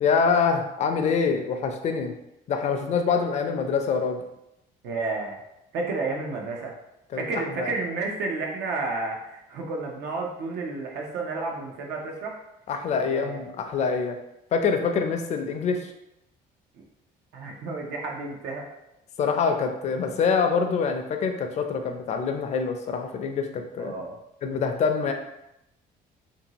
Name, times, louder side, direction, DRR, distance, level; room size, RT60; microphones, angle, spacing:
voice 1, 0.0-2.1 2.5-4.2 7.1-7.7 12.7-14.2 14.5-15.9 19.2-23.9 24.4-25.1, left 5 dB, 40° left, 5 dB, 0.4 m, -25 dB
voice 2, 4.8-5.4 5.7-6.7 7.1-12.4 13.0-13.4 17.3-18.7 23.8-24.1, right 3 dB, 85° right, 0 dB, 0.7 m, -31 dB
2.7 x 2.6 x 2.9 m, 0.86 s
cardioid pair, 110°, 17 cm